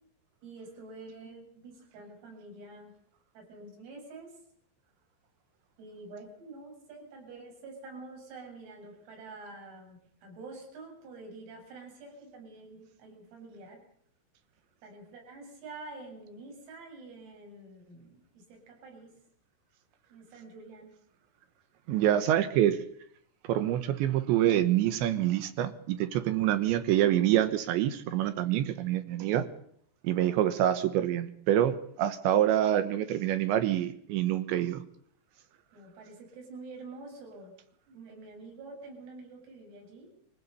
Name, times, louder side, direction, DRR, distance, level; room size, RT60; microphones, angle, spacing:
voice 1, 0.4-2.9 3.3-4.4 5.8-13.8 14.8-19.1 20.1-21.0 35.7-37.5 37.9-40.1, right 3 dB, 90° right, 1 dB, 10.0 m, -47 dB
voice 2, 21.9-22.8 23.5-29.5 30.0-34.8, right 12 dB, 75° right, 12 dB, 3.1 m, -26 dB
24.5 x 16.0 x 8.2 m, 0.66 s
omnidirectional pair, 5.9 m